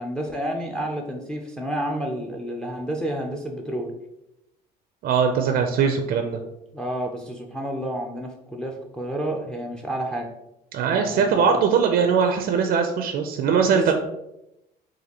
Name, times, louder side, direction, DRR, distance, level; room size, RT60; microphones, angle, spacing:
voice 1, 0.0-3.9 6.7-10.3 10.9-11.3 13.7-13.9, right 1 dB, 5° left, 2 dB, 0.4 m, -30 dB
voice 2, 5.0-6.4 10.7-13.9, right 6 dB, 60° right, 5 dB, 0.4 m, -21 dB
4.1 x 2.5 x 2.8 m, 0.87 s
cardioid pair, 110°, 17 cm